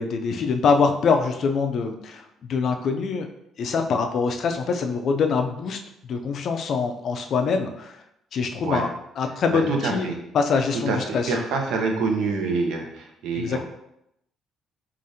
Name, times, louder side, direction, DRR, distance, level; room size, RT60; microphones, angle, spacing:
voice 1, 0.0-3.3 3.6-8.0 8.3-11.4 13.3-13.6, left 5 dB, 45° left, 5 dB, 0.3 m, -24 dB
voice 2, 9.5-10.2 10.9-13.6, right 4 dB, 80° right, 2 dB, 0.8 m, -26 dB
4.8 x 2.5 x 2.7 m, 0.79 s
cardioid pair, 165°, 0 cm